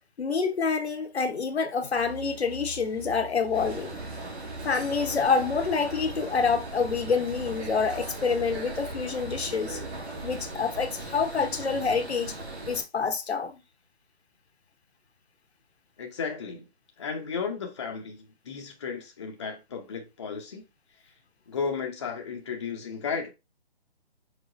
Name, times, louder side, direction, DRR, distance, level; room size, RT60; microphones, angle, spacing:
voice 1, 0.2-4.0 4.6-9.8 10.2-12.3 12.7-13.6, left 5 dB, 80° left, 1.0 m, -27 dB
sound 1, 1.9-10.6, right 2 dB, 15° right, 0.6 m, -43 dB
sound 2, 3.5-12.8, right 2 dB, 80° right, 2.1 m, -39 dB
voice 2, 16.0-16.7 17.0-20.7 21.5-23.3, left 5 dB, 25° left, 0.7 m, -34 dB
4.8 x 3.7 x 2.5 m
hypercardioid pair, 160°, 32 cm